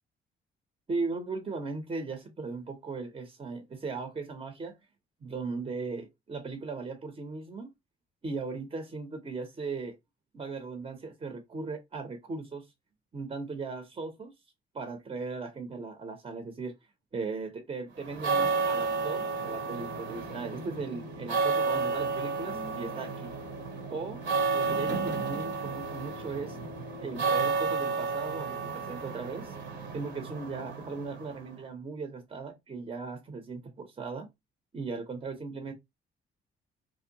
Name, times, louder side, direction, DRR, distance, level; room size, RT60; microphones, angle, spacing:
voice 1, 0.9-4.8 5.2-7.7 8.2-10.0 10.3-12.7 13.1-14.3 14.7-16.7 17.1-23.3 23.9-24.2 24.5-26.6 27.0-29.6 29.9-34.3 34.7-35.7, right 4 dB, 30° right, 0.6 m, -37 dB
sound 1, 18.0-31.5, right 4 dB, 65° right, 0.8 m, -32 dB
2.6 x 2.1 x 2.7 m
cardioid pair, 90°, 20 cm